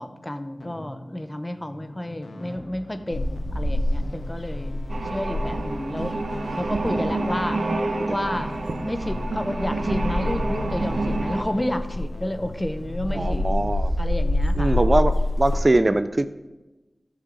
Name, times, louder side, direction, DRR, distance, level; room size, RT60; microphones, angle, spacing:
voice 1, 0.0-4.7 5.0-6.1 6.5-7.6 8.1-13.4 14.0-14.8 15.7-16.0, left 1 dB, 20° left, 9 dB, 0.8 m, -31 dB
sound 1, 0.6-13.7, left 2 dB, 85° left, 1.4 m, -41 dB
sound 2, 3.1-15.6, left 1 dB, 45° left, 2.4 m, -28 dB
sound 3, 4.9-11.4, right 2 dB, 75° right, 0.9 m, -28 dB
voice 2, 13.1-13.9 14.6-16.3, right 2 dB, 40° right, 12 dB, 0.4 m, -22 dB
17.0 x 6.3 x 4.0 m, 1.1 s
wide cardioid pair, 50°, 0 cm